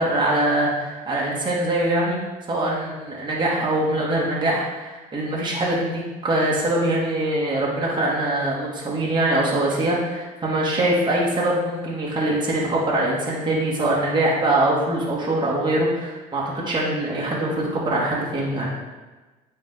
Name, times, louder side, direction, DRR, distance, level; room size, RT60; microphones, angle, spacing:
voice 1, 0.0-2.2 2.5-18.7, right 1 dB, 25° right, -5 dB, 1.8 m, -23 dB
8.9 x 3.5 x 3.6 m, 1.2 s
hypercardioid pair, 70°, 18 cm